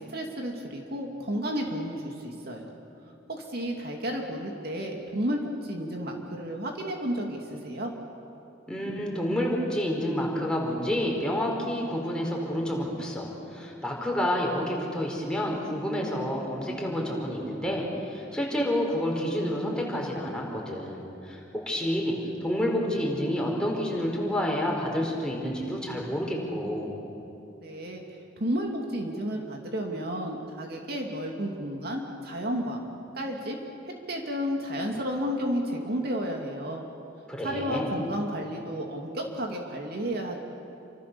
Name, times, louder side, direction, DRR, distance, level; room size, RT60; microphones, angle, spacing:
voice 1, 0.0-2.7 3.3-7.9 27.6-28.0 28.4-32.9 33.2-33.6 33.9-36.8 37.4-40.4, equal, 55° right, 1 dB, 2.7 m, -32 dB
voice 2, 8.7-22.1 22.4-26.9 37.3-37.9, equal, 5° left, -2 dB, 4.9 m, -29 dB
29.0 x 26.0 x 7.0 m, 2.8 s
head